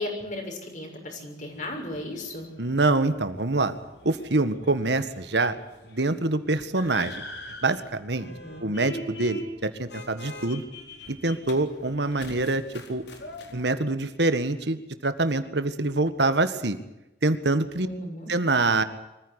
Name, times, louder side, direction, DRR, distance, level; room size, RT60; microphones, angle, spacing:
voice 1, 0.0-2.5 8.2-8.7 17.8-18.3, left 1 dB, 45° left, 2 dB, 6.5 m, -35 dB
sound 1, 1.5-13.7, left 1 dB, 70° left, 4.1 m, -43 dB
voice 2, 2.6-3.7 4.0-5.6 5.9-7.2 7.6-8.3 8.6-10.6 11.1-12.6 12.9-13.0 13.5-16.8 17.2-17.9 18.3-18.8, right 2 dB, 75° right, 11 dB, 1.7 m, -25 dB
24.5 x 15.0 x 10.0 m, 0.96 s
head